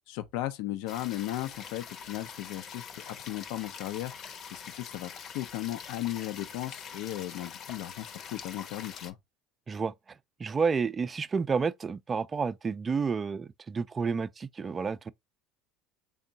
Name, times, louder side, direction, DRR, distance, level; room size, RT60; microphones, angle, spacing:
voice 1, 0.1-4.1 4.5-9.2, left 15 dB, 75° left, 0.6 m, -36 dB
sound 1, 0.9-9.1, left 7 dB, 45° left, 0.8 m, -44 dB
voice 2, 10.4-15.1, right 5 dB, 25° right, 0.4 m, -30 dB
3.6 x 2.1 x 4.0 m
supercardioid pair, 115°, 0 cm